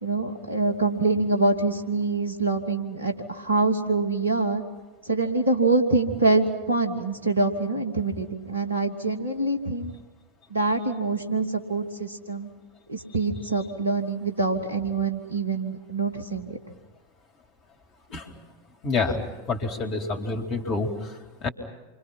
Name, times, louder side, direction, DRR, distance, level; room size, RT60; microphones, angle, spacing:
voice 1, 0.0-4.6 5.0-9.9 10.5-12.5 12.9-16.6, right 3 dB, 80° right, 4 dB, 2.9 m, -25 dB
voice 2, 18.8-21.5, left 3 dB, 35° left, 4 dB, 4.0 m, -28 dB
29.5 x 25.5 x 5.9 m, 1.2 s
figure-of-eight pair, 90°, 0 cm